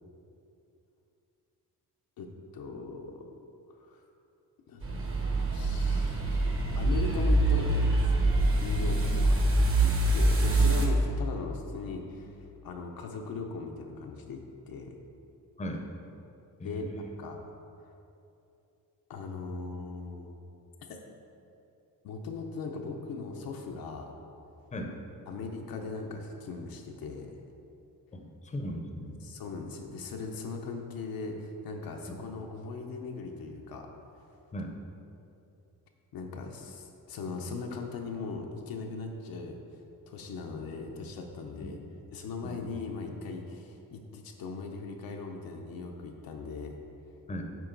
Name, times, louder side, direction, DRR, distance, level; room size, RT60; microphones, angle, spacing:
voice 1, 2.2-3.3 3.9-4.0 4.7-5.0 5.5-8.3 8.6-9.4 9.8-14.9 16.6-16.8 17.1-17.4 19.1-20.4 20.9-21.0 22.0-24.1 25.3-27.3 29.2-33.9 36.1-39.6 40.1-46.8, left 4 dB, 75° left, 2 dB, 0.8 m, -39 dB
sound 1, 4.8-10.9, right 2 dB, 35° right, 1.0 m, -25 dB
voice 2, 16.6-17.1 24.7-24.9 28.1-29.2 34.5-34.7 42.4-42.6 47.3-47.4, equal, 20° left, 2 dB, 0.7 m, -37 dB
7.6 x 4.5 x 3.9 m, 2.7 s
cardioid pair, 110°, 36 cm